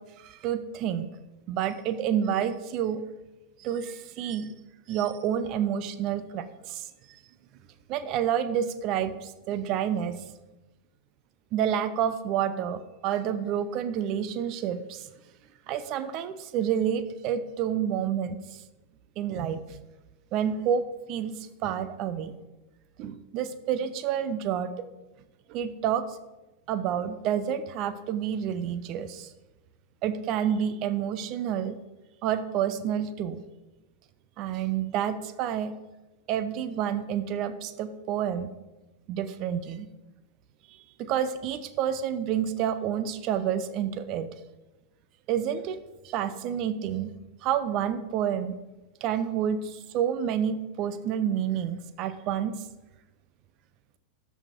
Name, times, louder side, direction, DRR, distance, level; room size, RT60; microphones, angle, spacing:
voice 1, 0.2-1.1 1.5-3.0 3.6-4.5 4.9-6.9 7.9-10.2 11.5-15.1 15.7-18.6 19.2-19.6 20.3-21.3 21.6-22.3 23.0-24.7 25.5-26.1 26.7-29.3 30.0-31.8 32.2-33.4 34.4-35.7 36.3-38.5 39.1-39.9 41.0-44.3 45.3-47.1 47.4-48.6 49.0-52.6, right 9 dB, 40° right, 13 dB, 0.7 m, -29 dB
12.5 x 5.7 x 4.4 m, 1.1 s
figure-of-eight pair, 90°, 0 cm